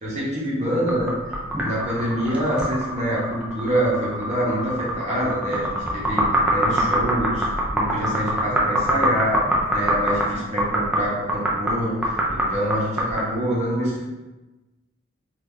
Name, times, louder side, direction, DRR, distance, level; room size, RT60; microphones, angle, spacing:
voice 1, 0.0-1.1 1.6-7.5 7.7-9.4 9.7-11.9 12.3-14.0, equal, 35° right, -5 dB, 1.0 m, -26 dB
sound 1, 0.9-13.3, equal, 5° right, 0.5 m, -24 dB
2.8 x 2.5 x 3.6 m, 1.1 s
head